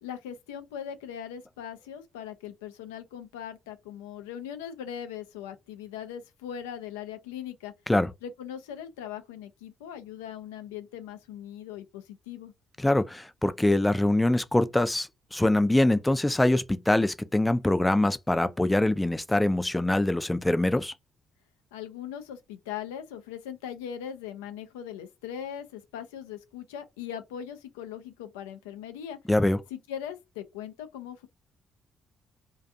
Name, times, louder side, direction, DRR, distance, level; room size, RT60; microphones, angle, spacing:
voice 1, 0.0-7.7 8.2-12.5 21.7-29.2 29.7-31.3, left 9 dB, 85° left, 0.4 m, -40 dB
voice 2, 12.8-20.9 29.3-29.6, left 1 dB, 15° left, 0.3 m, -24 dB
2.4 x 2.3 x 2.6 m
hypercardioid pair, 45°, 0 cm